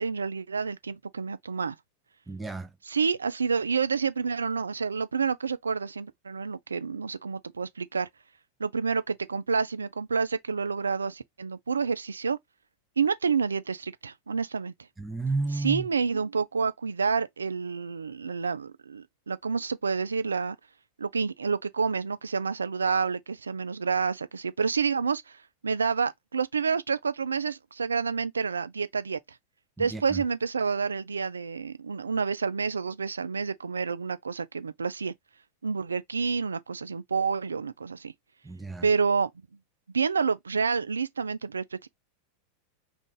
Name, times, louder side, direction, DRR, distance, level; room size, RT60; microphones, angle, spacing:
voice 1, 0.0-1.8 2.9-8.1 8.6-12.4 13.0-14.7 15.6-20.6 21.0-25.4 25.6-29.2 29.8-35.1 35.6-38.1 38.8-39.3 39.9-41.9, right 5 dB, 85° right, 0.3 m, -29 dB
voice 2, 2.3-2.7 15.0-15.9 29.8-30.2 38.4-38.9, right 3 dB, 10° right, 0.5 m, -32 dB
2.5 x 2.5 x 3.7 m
hypercardioid pair, 90°, 0 cm